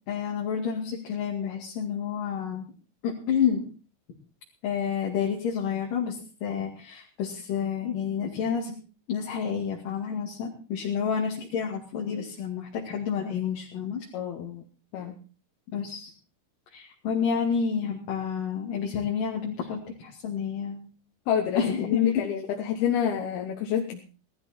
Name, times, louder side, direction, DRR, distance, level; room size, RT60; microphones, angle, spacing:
voice 1, 0.1-2.7 3.0-3.6 4.6-8.8 9.1-14.1 15.7-16.1 16.7-20.9 21.5-22.0, left 7 dB, 60° left, -2 dB, 3.8 m, -29 dB
voice 2, 14.1-14.6 14.9-15.1 21.3-24.0, left 9 dB, 80° left, 2 dB, 3.2 m, -28 dB
18.5 x 13.0 x 4.4 m, 0.37 s
omnidirectional pair, 4.4 m